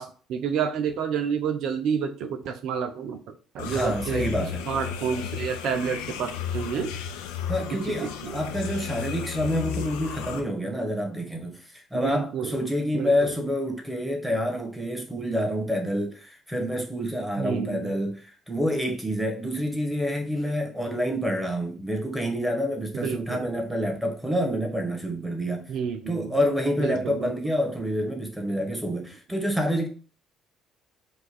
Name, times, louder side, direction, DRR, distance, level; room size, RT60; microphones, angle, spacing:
voice 1, 0.0-4.3 4.7-6.9 7.9-8.4 11.9-12.5 12.9-13.3 17.4-17.9 22.9-23.5 25.7-26.4 26.8-27.3, right 7 dB, 65° right, 0.5 m, -29 dB
sound 1, 3.6-10.4, left 9 dB, 80° left, 0.5 m, -34 dB
voice 2, 3.6-4.6 7.5-25.7 26.1-29.9, equal, ahead, 1.5 m, -28 dB
4.7 x 2.5 x 4.2 m
hypercardioid pair, 55°, 0 cm